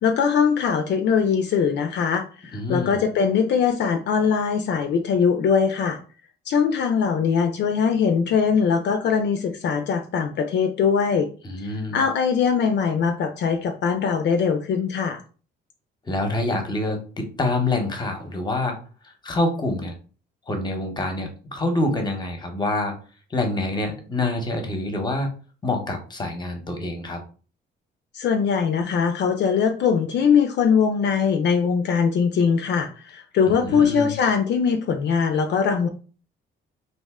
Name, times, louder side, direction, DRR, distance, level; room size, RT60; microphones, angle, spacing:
voice 1, 0.0-6.0 6.5-11.3 11.9-15.2 28.1-35.9, left 6 dB, 60° left, 5 dB, 0.4 m, -21 dB
voice 2, 2.5-3.0 11.4-12.0 16.0-18.8 19.0-19.9 20.5-23.0 23.3-25.3 25.6-27.2 33.5-34.2, left 2 dB, 20° left, 4 dB, 0.9 m, -26 dB
2.6 x 2.1 x 3.5 m, 0.38 s
cardioid pair, 90°, 20 cm